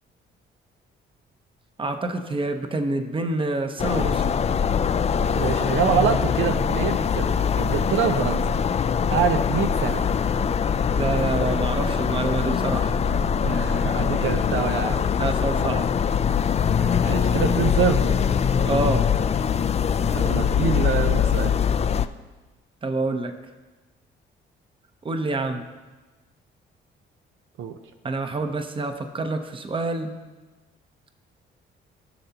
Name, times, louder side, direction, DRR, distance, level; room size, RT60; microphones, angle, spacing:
voice 1, 1.8-4.4 11.0-13.0 15.2-15.9 18.6-19.1 22.8-23.3 25.0-25.7 28.0-30.2, right 2 dB, 25° right, 7 dB, 0.9 m, -27 dB
sound 1, 3.8-22.1, left 7 dB, 35° left, 0.4 m, -23 dB
voice 2, 5.3-7.3 7.6-8.4 9.1-10.0 13.4-15.1 16.8-18.2 20.1-21.6 27.6-27.8, right 7 dB, 80° right, 7 dB, 0.7 m, -25 dB
16.5 x 6.6 x 2.9 m, 1.2 s
cardioid pair, 90°, 20 cm